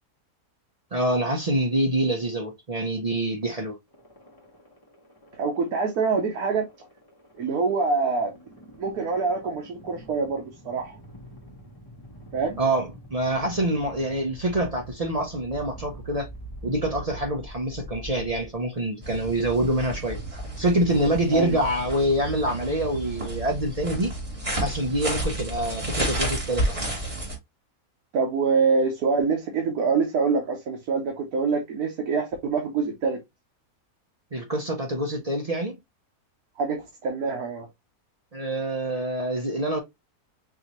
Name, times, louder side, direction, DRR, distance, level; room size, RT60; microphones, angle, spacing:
voice 1, 0.9-3.8 12.6-16.3 16.6-20.2 20.6-24.1 24.6-26.8 34.3-35.8 38.3-39.8, right 1 dB, 45° right, 0.5 m, -26 dB
sound 1, 3.9-19.0, right 1 dB, 15° left, 1.0 m, -45 dB
voice 2, 5.3-6.6 7.4-8.3 8.8-11.0 12.3-12.6 21.3-21.6 28.1-33.2 36.6-37.7, right 4 dB, 80° right, 1.4 m, -25 dB
sound 2, 19.0-27.4, right 1 dB, 20° right, 1.6 m, -31 dB
4.7 x 2.7 x 2.9 m
omnidirectional pair, 1.6 m